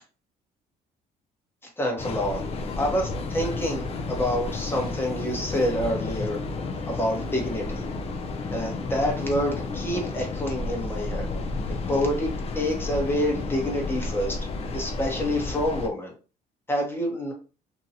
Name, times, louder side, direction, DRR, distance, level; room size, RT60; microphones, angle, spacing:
voice 1, 1.8-2.4 2.8-6.4 6.9-7.8 8.5-11.3 11.9-14.4 14.7-16.1 16.7-17.3, equal, 15° left, 0 dB, 0.9 m, -27 dB
Train, 2.0-15.9, left 3 dB, 35° left, 0.4 m, -32 dB
2.7 x 2.2 x 2.7 m, 0.34 s
cardioid pair, 110°, 17 cm